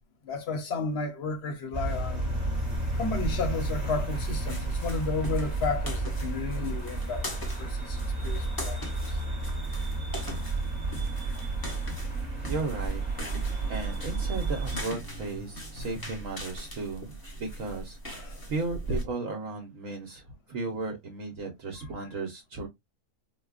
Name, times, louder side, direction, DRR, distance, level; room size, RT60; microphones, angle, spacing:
voice 1, 0.2-2.3 3.0-7.3 7.6-9.2 18.1-18.5, left 4 dB, 50° left, 0.9 m, -33 dB
sound 1, 1.7-14.8, right 2 dB, 30° right, 1.2 m, -32 dB
sound 2, 2.5-19.0, right 1 dB, 20° left, 0.7 m, -39 dB
voice 2, 12.2-13.0 13.7-22.7, right 3 dB, 65° right, 1.1 m, -35 dB
4.4 x 2.2 x 2.4 m
omnidirectional pair, 1.6 m